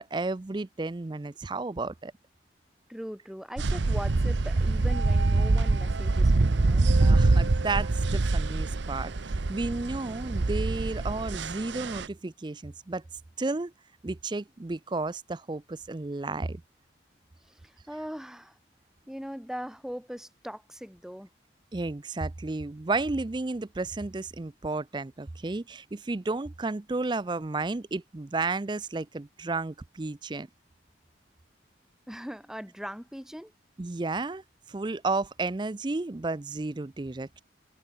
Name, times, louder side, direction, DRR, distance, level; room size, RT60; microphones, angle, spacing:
voice 1, 0.0-2.1 7.0-13.0 13.4-13.7 14.0-16.6 21.7-30.5 33.8-34.4 34.7-37.4, right 3 dB, 25° right, 0.4 m, -32 dB
voice 2, 2.9-6.9 17.4-18.6 19.1-21.3 32.1-33.5, equal, 5° right, 1.5 m, -40 dB
sound 1, 3.6-12.1, right 3 dB, 75° right, 0.8 m, -25 dB
head